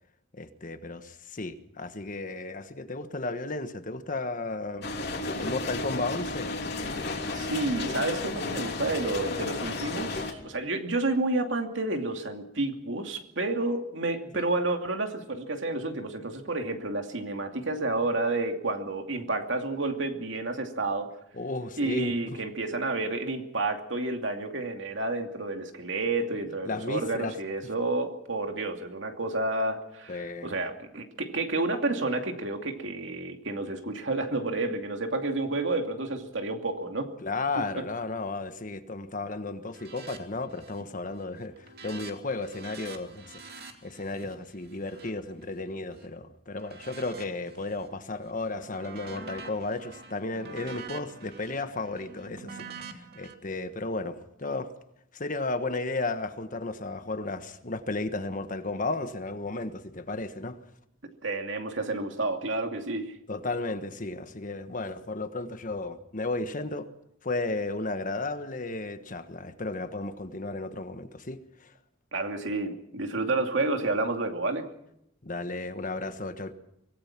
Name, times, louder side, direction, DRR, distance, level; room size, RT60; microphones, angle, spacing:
voice 1, 0.3-4.9 5.4-6.5 14.3-14.4 21.3-22.4 26.6-27.4 30.1-30.5 37.2-41.5 41.8-54.7 55.1-60.6 63.3-66.9 67.2-71.7 75.2-76.5, left 2 dB, 45° left, 1.4 m, -34 dB
sound 1, 4.8-10.3, left 3 dB, 60° left, 3.2 m, -33 dB
voice 2, 7.3-21.1 21.8-37.1 37.5-37.8 61.0-63.1 72.1-74.7, right 2 dB, 70° right, 2.6 m, -30 dB
sound 2, 39.7-40.2 40.5-40.9 41.2-46.1 46.6-47.9 48.3-53.3, right 4 dB, 55° right, 2.5 m, -46 dB
24.5 x 18.0 x 6.0 m
head